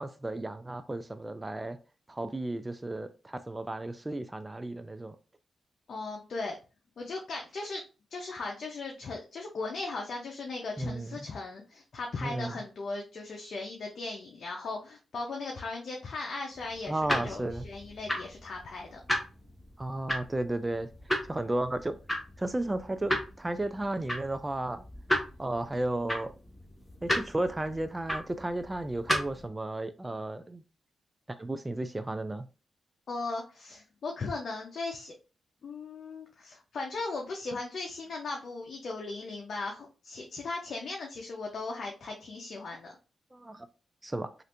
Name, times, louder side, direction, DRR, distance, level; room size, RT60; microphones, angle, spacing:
voice 1, 0.0-1.8 2.1-5.2 10.8-11.2 12.2-12.6 16.9-17.6 19.8-20.9 21.3-22.0 22.4-24.8 25.4-26.3 27.0-30.6 31.4-32.5 43.3-43.7 44.0-44.3, right 1 dB, 20° right, 0.3 m, -33 dB
voice 2, 5.9-6.6 7.0-7.8 8.1-19.0 33.1-35.1 35.6-42.9, left 3 dB, 65° left, 0.6 m, -37 dB
sound 1, 16.5-29.5, equal, 15° left, 0.9 m, -35 dB
3.2 x 2.5 x 2.8 m
cardioid pair, 90°, 0 cm